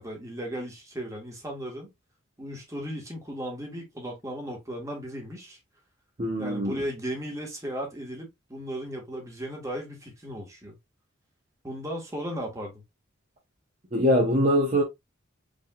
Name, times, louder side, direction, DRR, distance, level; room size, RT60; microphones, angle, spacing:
voice 1, 0.0-1.9 2.4-5.6 6.4-10.7 11.6-12.8, equal, 15° right, 1.8 m, -36 dB
voice 2, 6.2-6.8 13.9-14.8, equal, 35° right, 1.0 m, -23 dB
5.1 x 3.6 x 2.5 m
head